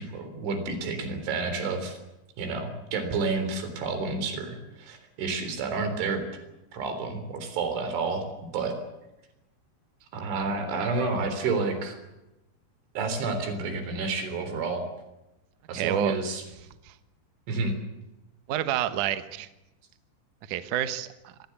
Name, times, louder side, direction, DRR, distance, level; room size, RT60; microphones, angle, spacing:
voice 1, 0.0-2.0 2.4-6.3 6.7-8.8 10.1-12.0 13.0-14.8 15.7-16.4 17.5-17.8, right 4 dB, 90° right, 8 dB, 6.2 m, -30 dB
voice 2, 15.7-16.2 16.8-17.0 18.5-19.5 20.5-21.3, right 11 dB, 65° right, 10 dB, 2.1 m, -28 dB
26.0 x 19.5 x 8.5 m, 0.96 s
omnidirectional pair, 5.3 m